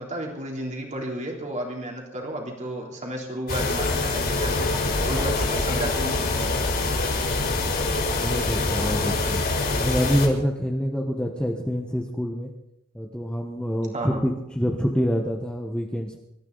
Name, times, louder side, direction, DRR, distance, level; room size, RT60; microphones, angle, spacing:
voice 1, 0.0-4.7 5.0-6.4 13.9-14.2, right 1 dB, 35° right, -1 dB, 3.5 m, -32 dB
sound 1, 3.5-10.3, left 2 dB, 45° left, 4.7 m, -25 dB
voice 2, 8.1-9.4 9.8-12.5 12.9-16.2, equal, 5° left, 0 dB, 1.3 m, -26 dB
26.0 x 13.5 x 4.1 m, 0.83 s
head